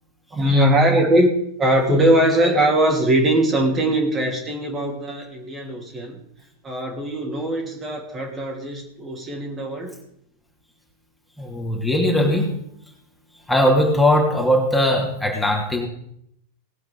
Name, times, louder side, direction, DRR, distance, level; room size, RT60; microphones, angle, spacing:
voice 1, 0.3-1.3 1.6-6.2 6.6-9.9, right 1 dB, 20° right, 1 dB, 2.9 m, -20 dB
voice 2, 11.4-12.5 13.5-15.9, left 1 dB, 5° left, -1 dB, 2.8 m, -19 dB
19.0 x 7.8 x 5.5 m, 0.72 s
figure-of-eight pair, 90°, 0 cm